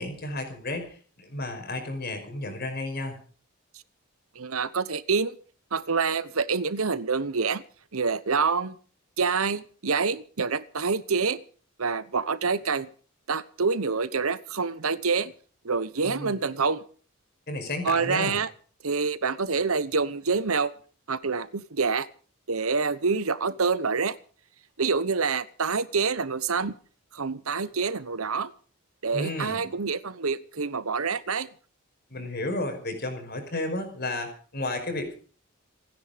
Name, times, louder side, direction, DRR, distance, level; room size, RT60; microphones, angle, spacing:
voice 1, 0.0-3.2 16.0-16.3 17.5-18.4 29.1-29.7 32.1-35.1, left 2 dB, 45° left, 5 dB, 5.4 m, -32 dB
voice 2, 4.3-5.3 5.7-7.6 7.9-8.7 9.2-11.4 11.8-12.9 13.3-15.3 15.6-16.8 17.8-18.5 18.8-20.7 21.1-22.1 22.5-24.2 24.8-26.8 27.1-28.5 29.0-31.5, right 5 dB, 80° right, 16 dB, 1.1 m, -27 dB
27.5 x 10.5 x 5.1 m, 0.41 s
head